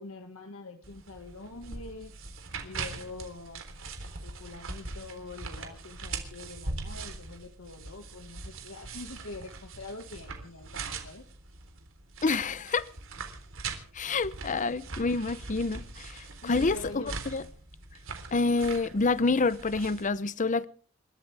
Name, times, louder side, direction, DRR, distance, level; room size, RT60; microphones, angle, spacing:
voice 1, 0.0-2.2 2.6-3.6 4.0-11.2 16.4-17.1, left 2 dB, 75° left, 1.8 m, -44 dB
sound 1, 0.8-20.1, right 3 dB, 65° right, 3.6 m, -41 dB
voice 2, 12.2-12.8 13.9-17.0 17.3-17.4 18.3-20.7, left 3 dB, 35° left, 0.7 m, -27 dB
29.0 x 13.5 x 3.4 m
head